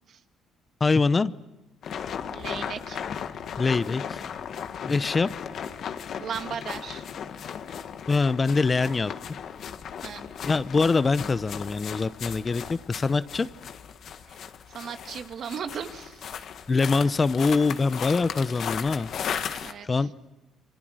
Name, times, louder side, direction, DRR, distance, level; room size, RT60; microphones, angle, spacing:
voice 1, 0.8-1.3 3.6-4.2 4.8-5.3 8.1-9.1 10.4-13.5 16.7-19.1 19.8-20.1, left 4 dB, 30° left, 16 dB, 0.7 m, -24 dB
sound 1, 1.8-19.7, left 8 dB, 60° left, 1.5 m, -36 dB
voice 2, 2.3-3.0 6.2-7.0 10.0-10.2 14.3-14.4 14.7-16.2 19.6-20.1, right 7 dB, 55° right, 8 dB, 1.9 m, -36 dB
28.5 x 24.0 x 6.4 m, 1.0 s
supercardioid pair, 75°, 0 cm